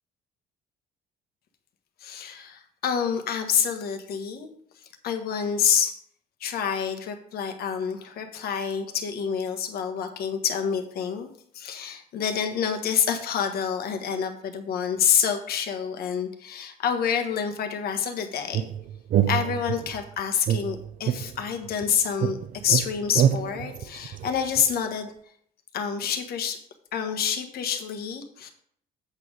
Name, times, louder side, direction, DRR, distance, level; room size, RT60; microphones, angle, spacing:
voice 1, 2.0-4.5 5.0-6.0 6.4-11.3 11.5-18.7 19.3-22.4 22.6-25.1 25.7-26.6 26.9-28.5, left 7 dB, 65° left, 6 dB, 1.5 m, -27 dB
sound 1, 18.5-20.0 20.5-21.9 22.2-24.7, right 10 dB, 55° right, 0.7 m, -26 dB
8.2 x 5.5 x 6.5 m, 0.64 s
cardioid pair, 110°, 17 cm